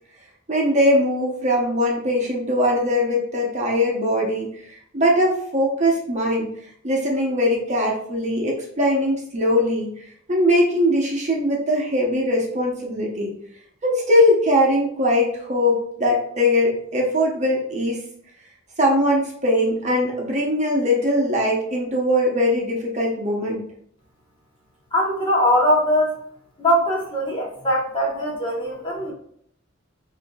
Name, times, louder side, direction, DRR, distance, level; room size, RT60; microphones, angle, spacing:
voice 1, 0.5-4.5 4.9-6.5 6.8-9.9 10.3-13.3 13.8-18.0 18.8-23.6, left 1 dB, 35° right, -2 dB, 0.9 m, -21 dB
voice 2, 24.9-26.2 26.6-29.1, equal, 25° left, -3 dB, 1.0 m, -21 dB
5.8 x 2.6 x 2.3 m, 0.67 s
head